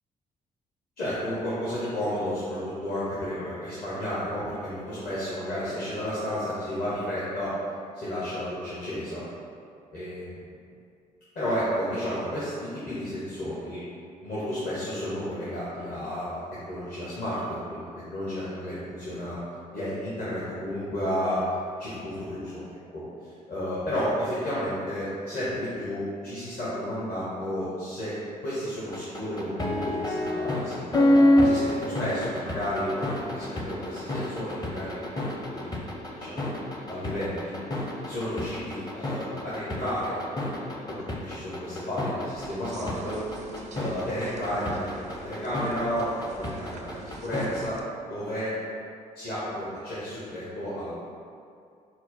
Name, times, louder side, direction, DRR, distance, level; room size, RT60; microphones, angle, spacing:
voice 1, 1.0-7.5 7.9-9.2 9.9-10.3 11.3-13.8 14.2-19.4 19.7-21.4 21.8-23.0 23.5-28.2 28.4-30.8 31.4-35.0 35.5-35.9 36.2-37.5 38.1-43.2 43.7-47.8 48.1-48.5 49.1-50.9, equal, 50° left, -10 dB, 1.1 m, -32 dB
sound 1, 28.9-47.6, left 1 dB, 20° left, 0.7 m, -26 dB
sound 2, 42.3-47.8, right 3 dB, 35° right, 0.4 m, -44 dB
4.3 x 2.1 x 4.1 m, 2.4 s
figure-of-eight pair, 45°, 20 cm